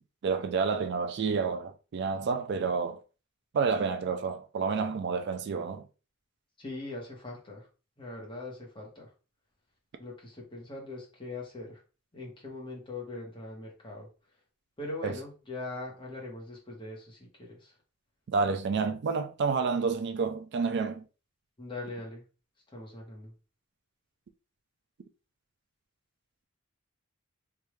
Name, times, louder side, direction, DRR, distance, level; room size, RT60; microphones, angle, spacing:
voice 1, 0.2-3.0 3.5-5.8 15.0-15.1 18.3-21.0, right 5 dB, 55° right, 0.4 m, -29 dB
voice 2, 6.6-7.7 8.0-9.1 10.0-11.8 12.1-14.1 14.8-17.8 21.6-22.2 22.7-23.3, left 2 dB, 25° left, 1.3 m, -41 dB
3.4 x 2.6 x 3.1 m
head